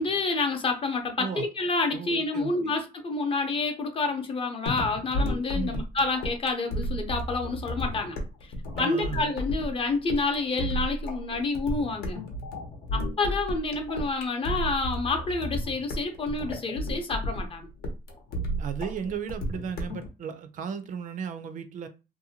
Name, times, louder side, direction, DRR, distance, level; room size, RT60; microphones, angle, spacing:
voice 1, 0.0-8.2 8.8-12.2 12.9-17.7, left 3 dB, 35° left, 0.6 m, -28 dB
voice 2, 1.9-2.5 5.5-5.8 8.8-9.3 18.6-21.9, right 7 dB, 55° right, 0.4 m, -35 dB
sound 1, 4.7-20.1, equal, 75° left, 0.8 m, -32 dB
2.6 x 2.1 x 2.8 m
cardioid pair, 110°, 16 cm